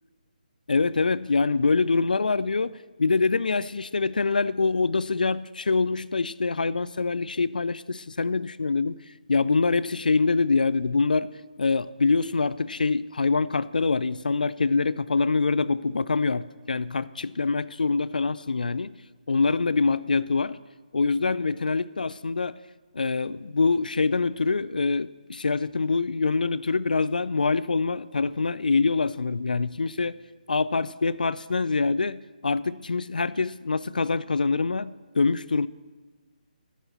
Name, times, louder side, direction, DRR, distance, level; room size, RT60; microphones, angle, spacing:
voice 1, 0.7-9.0 9.3-11.3 11.6-18.9 19.3-20.6 20.9-22.6 22.9-30.2 30.5-35.7, left 4 dB, 70° left, 0.4 m, -25 dB
10.0 x 7.3 x 8.0 m
figure-of-eight pair, 145°, 5 cm